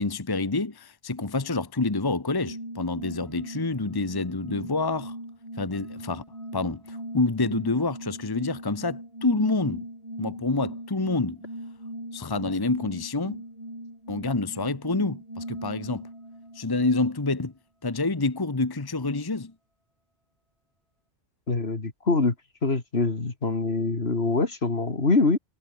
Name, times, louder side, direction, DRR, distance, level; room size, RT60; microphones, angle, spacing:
voice 1, 0.0-5.1 5.6-6.2 6.5-9.9 10.2-11.4 12.1-13.4 14.1-16.1 16.5-17.5 17.8-19.5, left 3 dB, 20° left, 1.1 m, -27 dB
sound 1, 2.4-16.9, right 1 dB, 30° right, 7.4 m, -40 dB
voice 2, 21.5-22.3 22.6-25.4, left 3 dB, 65° left, 2.9 m, -24 dB
omnidirectional pair, 1.1 m